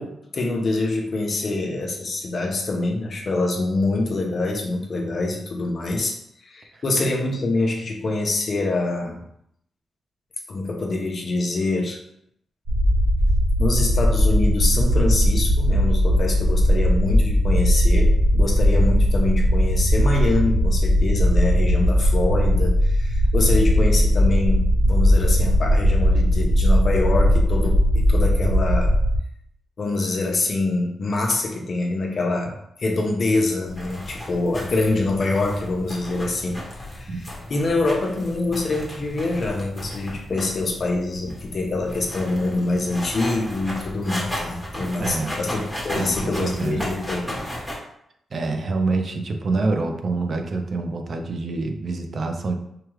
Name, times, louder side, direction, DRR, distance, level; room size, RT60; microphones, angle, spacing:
voice 1, 0.0-6.2 6.4-9.2 10.5-12.0 13.6-28.9 29.8-36.6 36.9-47.4, left 2 dB, 45° left, 1 dB, 0.7 m, -25 dB
sound 1, 12.7-29.2, equal, 70° right, 1.3 m, -18 dB
sound 2, 33.7-47.8, left 1 dB, 5° left, 1.3 m, -35 dB
voice 2, 45.0-45.4 46.0-46.9 48.3-52.6, right 3 dB, 50° right, 5 dB, 0.5 m, -26 dB
4.7 x 2.3 x 3.1 m, 0.74 s
cardioid pair, 110°, 0 cm